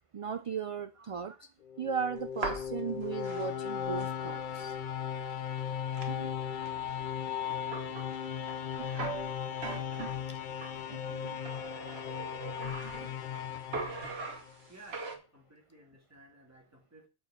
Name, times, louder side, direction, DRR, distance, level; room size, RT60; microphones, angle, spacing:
voice 1, 0.1-1.5 1.8-5.2 6.1-6.3 6.9-7.0 8.8-9.0 10.7-11.5 14.3-14.4, right 6 dB, 55° right, 0.3 m, -38 dB
sound 1, 1.6-14.7, left 8 dB, 55° left, 0.7 m, -37 dB
sound 2, 2.2-4.8 5.2-5.3 5.6-10.8 11.4-13.4 13.7-15.2, right 4 dB, 80° right, 1.4 m, -42 dB
voice 2, 14.7-17.1, right 2 dB, 15° right, 2.3 m, -55 dB
7.1 x 4.5 x 6.3 m
omnidirectional pair, 1.0 m